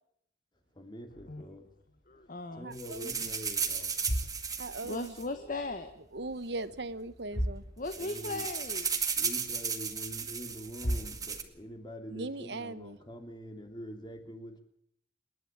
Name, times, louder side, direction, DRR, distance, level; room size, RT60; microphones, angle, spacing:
voice 1, 0.7-1.7 2.2-3.9 7.9-8.5 9.2-14.6, equal, 25° left, 3.1 m, -45 dB
sound 1, 1.1-2.7 3.0-3.4 3.8-5.7 5.9-6.6 6.9-7.0 7.3-8.3 8.6-8.7 9.3-9.4 10.4-10.5 10.8-11.8, equal, 75° left, 3.4 m, -38 dB
voice 2, 2.1-2.7 4.8-5.9 7.8-8.9, left 2 dB, 50° left, 1.6 m, -37 dB
voice 3, 2.6-3.3 4.6-5.2 6.1-7.6 12.1-13.0, right 2 dB, 70° right, 1.3 m, -39 dB
sound 2, 2.7-5.9 6.8-6.9 7.1-7.3 7.6-11.4, right 6 dB, 20° right, 2.1 m, -35 dB
28.0 x 11.0 x 9.1 m
head